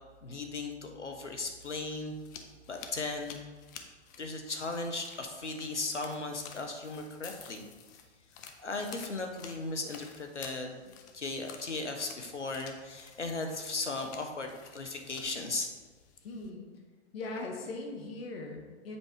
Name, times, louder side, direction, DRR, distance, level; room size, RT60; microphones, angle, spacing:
voice 1, 0.2-2.1 2.7-3.4 4.2-7.6 8.6-10.8 11.1-15.7, left 3 dB, 90° left, 4 dB, 1.2 m, -37 dB
sound 1, 1.3-16.5, left 7 dB, 20° left, 0.4 m, -52 dB
voice 2, 16.2-16.7 17.1-19.0, left 2 dB, 60° left, 2 dB, 1.7 m, -40 dB
7.6 x 4.7 x 4.7 m, 1.4 s
hypercardioid pair, 120°, 34 cm